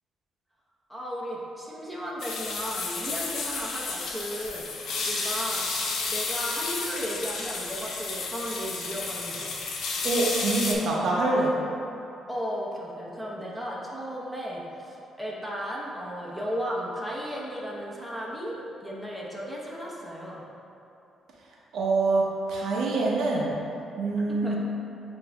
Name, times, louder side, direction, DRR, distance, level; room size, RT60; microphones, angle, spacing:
voice 1, 0.9-5.7 6.1-9.5 12.3-20.4 24.3-24.6, equal, ahead, -5 dB, 0.8 m, -35 dB
sound 1, 2.2-10.7, left 4 dB, 75° left, 0.6 m, -32 dB
voice 2, 10.0-11.6 21.7-23.5 24.0-24.5, right 3 dB, 75° right, -3 dB, 0.7 m, -25 dB
7.8 x 2.6 x 2.2 m, 2.9 s
cardioid pair, 90°, 0 cm